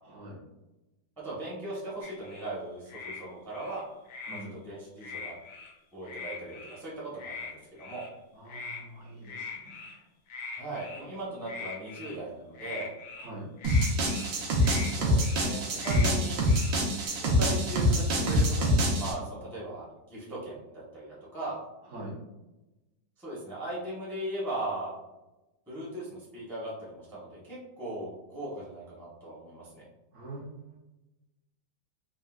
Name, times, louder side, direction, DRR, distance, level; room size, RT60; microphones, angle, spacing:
voice 1, 0.0-0.4 4.3-4.6 8.3-10.0 13.2-13.5 21.9-22.2 30.1-30.8, right 1 dB, 60° right, -2 dB, 0.9 m, -44 dB
voice 2, 1.2-3.8 4.5-5.3 5.9-8.0 10.5-12.9 14.9-16.4 17.2-21.6 23.2-25.0 25.7-29.8, right 1 dB, 5° left, -7 dB, 0.3 m, -38 dB
sound 1, 2.0-2.5 2.9-3.2 3.5-4.4 5.0-5.7 6.0-6.8 7.2-7.5 7.8-8.1 8.5-8.8 9.2-10.0 10.3-11.1 11.5-12.2 12.5-13.3 13.6-14.3 14.6-14.9 15.2-15.5 15.8-16.1 16.4-17.1, left 4 dB, 80° left, 0.7 m, -41 dB
sound 2, 13.6-19.1, equal, 80° right, 1.4 m, -25 dB
3.6 x 2.1 x 2.3 m, 1.0 s
omnidirectional pair, 2.0 m